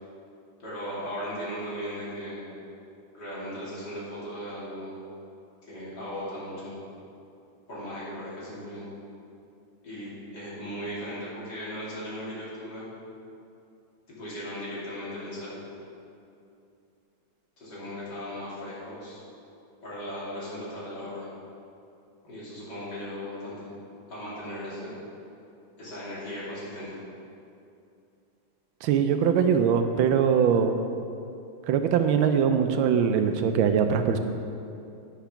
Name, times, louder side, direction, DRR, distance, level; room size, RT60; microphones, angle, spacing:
voice 1, 0.6-2.5 3.1-4.9 5.7-6.7 7.7-8.9 9.8-12.8 14.1-15.6 17.6-19.2 19.8-21.3 22.2-23.7 24.1-25.0 25.8-27.0, equal, 55° left, -9 dB, 3.4 m, -37 dB
voice 2, 28.8-30.8 31.7-34.2, right 7 dB, 80° right, 7 dB, 1.4 m, -22 dB
10.0 x 5.7 x 5.8 m, 2.7 s
omnidirectional pair, 2.2 m